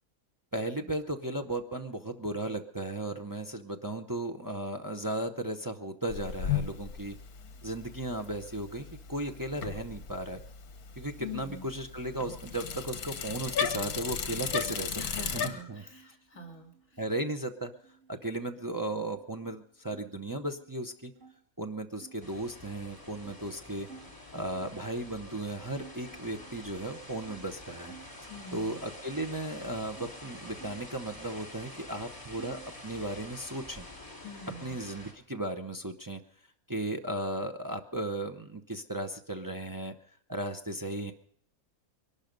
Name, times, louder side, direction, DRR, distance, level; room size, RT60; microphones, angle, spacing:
voice 1, 0.5-7.2 7.6-10.4 11.0-16.2 17.0-17.7 18.1-21.1 21.6-23.9 24.3-27.9 28.5-33.9 34.6-36.2 36.7-39.9 40.3-41.1, right 1 dB, 25° right, 4 dB, 0.4 m, -36 dB
Bicycle, 6.1-15.5, left 7 dB, 80° left, 1.6 m, -36 dB
voice 2, 11.2-11.7 15.0-17.0 28.3-28.8 34.2-34.7, left 4 dB, 60° left, 3 dB, 2.5 m, -44 dB
sound 1, 15.2-20.0 20.3-21.4 21.9-24.8 25.3-25.4 25.7-28.1 28.5-30.1 30.5-31.6 31.9-32.8, right 5 dB, 55° right, 2.9 m, -56 dB
sound 2, 22.2-35.1, left 1 dB, 15° left, 2.8 m, -48 dB
22.0 x 12.0 x 5.2 m, 0.65 s
omnidirectional pair, 1.6 m